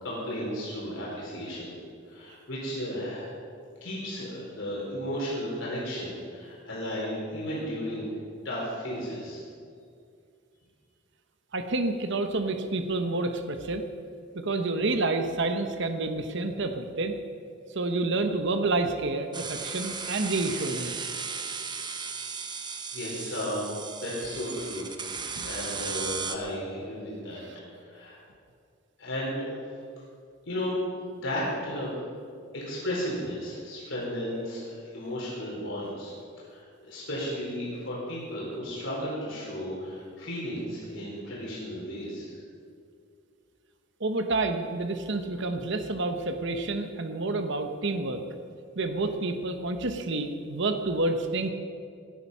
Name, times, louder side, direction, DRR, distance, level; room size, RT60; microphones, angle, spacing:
voice 1, 0.0-1.7 2.1-3.3 3.8-8.1 8.4-9.4 22.9-23.7 24.0-27.4 27.7-28.2 29.0-29.5 30.5-30.8 31.1-32.0 32.5-36.1 36.4-42.4, equal, 65° left, -6 dB, 4.3 m, -34 dB
voice 2, 11.5-13.8 14.3-17.2 17.7-20.9 25.3-25.5 44.0-48.2 48.8-51.5, right 2 dB, 65° right, 7 dB, 1.1 m, -29 dB
sound 1, 19.3-26.4, right 5 dB, 25° right, 0.9 m, -36 dB
17.0 x 11.0 x 5.6 m, 2.3 s
head